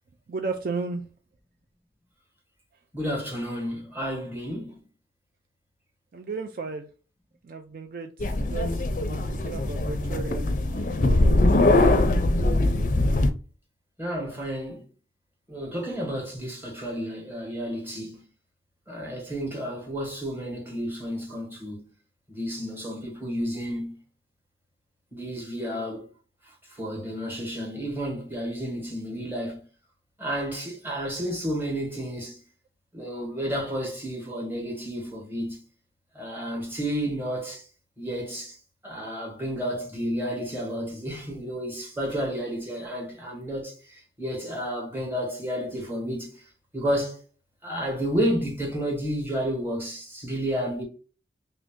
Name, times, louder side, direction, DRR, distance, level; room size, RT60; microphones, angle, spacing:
voice 1, 0.3-1.0 6.1-6.9 7.4-11.5, right 4 dB, 50° right, 0.3 m, -35 dB
voice 2, 2.9-4.8 14.0-14.8 15.5-18.2 18.9-21.8 22.3-24.0 25.1-26.1 26.7-29.6 30.2-32.4 32.9-35.6 36.1-37.6 38.0-38.6 38.8-46.4 46.7-47.2 47.6-50.8, equal, 10° right, 1.3 m, -31 dB
sound 1, 8.2-13.3, left 2 dB, 45° left, 0.4 m, -22 dB
3.2 x 2.6 x 3.6 m
head